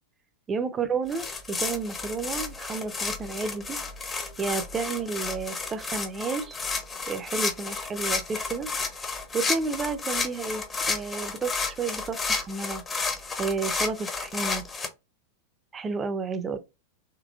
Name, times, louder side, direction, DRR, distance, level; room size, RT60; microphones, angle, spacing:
voice 1, 0.5-3.8 4.4-6.6 7.1-8.7 9.0-12.8 13.4-14.6 15.7-16.6, right 4 dB, 20° right, 0.5 m, -31 dB
sound 1, 1.1-14.9, left 4 dB, 20° left, 0.7 m, -32 dB
3.9 x 2.9 x 2.3 m
figure-of-eight pair, 90°, 0 cm